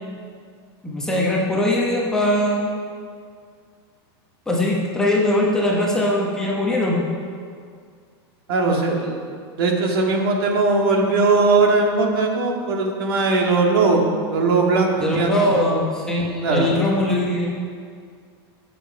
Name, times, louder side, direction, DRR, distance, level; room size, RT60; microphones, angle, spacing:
voice 1, 0.8-2.7 4.5-7.0 15.0-17.6, left 1 dB, 5° left, -4 dB, 1.0 m, -21 dB
voice 2, 8.5-9.2 9.6-14.0 14.3-15.3 16.4-16.7, right 3 dB, 60° right, 1 dB, 2.0 m, -19 dB
16.0 x 7.4 x 4.9 m, 2.1 s
supercardioid pair, 180°, 14 cm